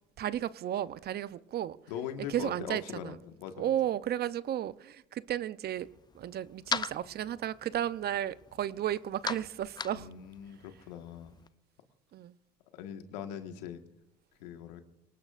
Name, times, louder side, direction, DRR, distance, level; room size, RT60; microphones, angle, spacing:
voice 1, 0.2-1.8 2.3-3.2 3.5-5.9 6.1-10.1 12.1-12.3, right 11 dB, 50° right, 16 dB, 0.7 m, -33 dB
voice 2, 1.9-3.7 9.9-11.3 12.7-13.8 14.4-14.8, left 9 dB, 85° left, 6 dB, 1.6 m, -41 dB
sound 1, 5.8-11.5, left 5 dB, 20° left, 0.5 m, -41 dB
26.5 x 18.5 x 2.5 m, 0.90 s
hypercardioid pair, 75°, 21 cm